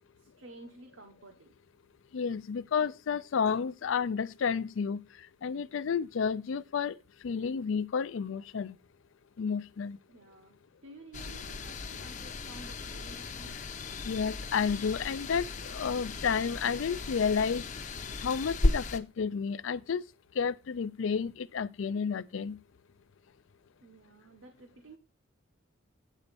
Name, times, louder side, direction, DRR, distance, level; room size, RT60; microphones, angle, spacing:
voice 1, 0.1-1.5 2.8-2.9 10.1-10.6 10.8-13.6 23.8-25.0, right 2 dB, 70° right, 1.1 m, -52 dB
voice 2, 2.1-5.0 5.4-7.0 7.2-8.8 9.4-10.0 14.0-17.6 18.2-20.0 20.4-22.6, left 6 dB, 70° left, 0.4 m, -31 dB
sound 1, 11.1-19.0, left 2 dB, 40° left, 0.7 m, -35 dB
9.2 x 4.1 x 6.8 m
head